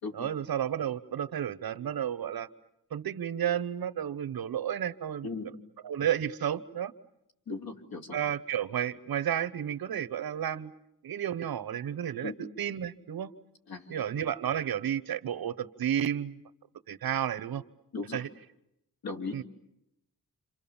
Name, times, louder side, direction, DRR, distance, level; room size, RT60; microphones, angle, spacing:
voice 1, 0.1-2.5 2.9-5.3 5.8-6.9 8.1-10.7 11.0-13.3 13.9-16.4 16.9-17.6 18.1-18.3 19.3-19.4, right 9 dB, 85° right, 13 dB, 1.1 m, -32 dB
voice 2, 7.5-8.2 12.2-12.4 13.7-14.0 17.9-18.2 19.0-19.4, left 3 dB, 80° left, 4 dB, 3.0 m, -37 dB
29.0 x 27.0 x 7.2 m, 0.82 s
wide cardioid pair, 170°, 36 cm